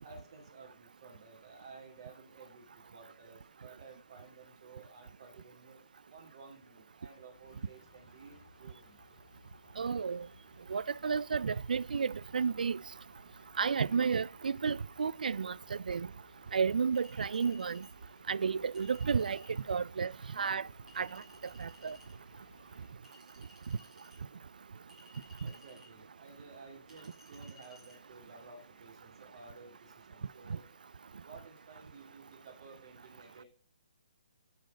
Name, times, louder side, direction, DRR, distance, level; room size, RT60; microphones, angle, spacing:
voice 1, 0.0-5.8 6.1-9.0 25.4-30.7 31.2-33.4, right 4 dB, 35° right, 2.1 m, -54 dB
sound 1, 7.3-22.9, left 3 dB, 40° left, 1.8 m, -62 dB
voice 2, 9.8-10.3 10.7-12.8 13.6-16.1 16.5-17.8 18.3-19.4 19.7-20.6 21.0-21.2 21.6-22.0, right 6 dB, 75° right, 0.3 m, -32 dB
Chink clink, 17.0-17.9 18.7-19.6 20.9-22.1 23.0-24.2 24.9-25.9 26.9-28.0, left 1 dB, 5° right, 1.5 m, -59 dB
11.5 x 4.0 x 5.0 m
hypercardioid pair, 175°, 5 cm